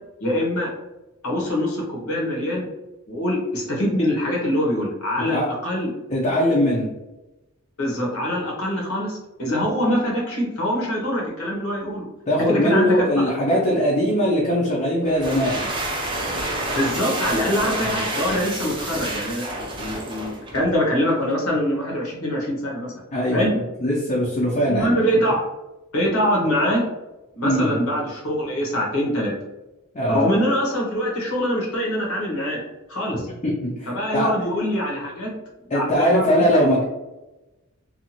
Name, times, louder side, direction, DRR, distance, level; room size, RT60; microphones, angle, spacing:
voice 1, 0.2-0.7 1.2-2.7 3.1-5.9 7.8-12.1 12.5-13.0 13.3-13.4 16.7-19.5 19.8-22.9 23.3-23.5 24.6-25.4 25.9-26.8 27.3-29.3 30.1-32.6 32.9-33.3 33.9-35.3 35.7-36.6, equal, 70° left, -2 dB, 0.8 m, -24 dB
voice 2, 6.1-6.9 12.3-15.6 17.9-18.0 23.1-24.9 27.4-27.8 29.9-30.3 33.4-34.3 35.7-36.8, equal, 30° left, -5 dB, 0.5 m, -21 dB
sound 1, 15.0-20.8, right 1 dB, 20° right, 0.5 m, -29 dB
2.6 x 2.4 x 2.8 m, 1.0 s
head